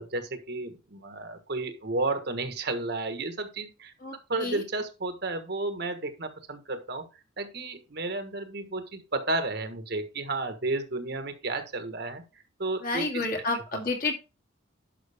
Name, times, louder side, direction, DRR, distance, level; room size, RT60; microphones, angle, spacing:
voice 1, 0.0-7.0 7.4-12.2 12.6-13.2, right 2 dB, 55° right, 8 dB, 1.4 m, -32 dB
voice 2, 4.0-4.6 12.8-14.1, left 3 dB, 45° left, 2 dB, 2.2 m, -30 dB
11.5 x 6.2 x 3.5 m, 0.29 s
head